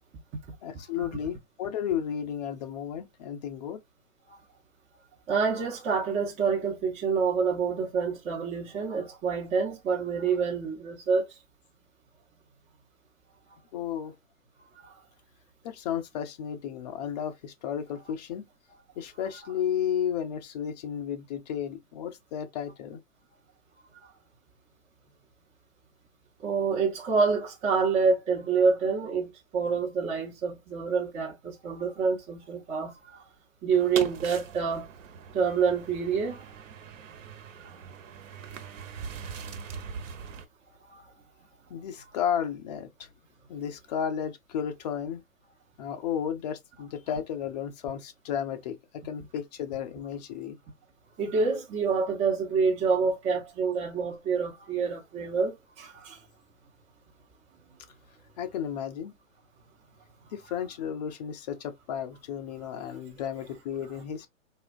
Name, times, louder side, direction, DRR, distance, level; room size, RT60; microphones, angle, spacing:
voice 1, 0.6-3.8 13.7-14.1 15.6-18.5 19.0-23.0 41.7-43.1 43.5-45.2 45.8-50.6 58.4-59.1 60.3-64.3, left 9 dB, 30° left, 0.5 m, -33 dB
voice 2, 5.3-11.3 14.8-14.9 26.4-33.2 33.6-34.9 35.3-36.5 40.9-41.1 51.2-56.2, right 5 dB, 15° right, 0.7 m, -27 dB
sound 1, 33.7-40.4, right 6 dB, 70° right, 0.8 m, -41 dB
4.1 x 2.3 x 2.4 m
hypercardioid pair, 140°, 40 cm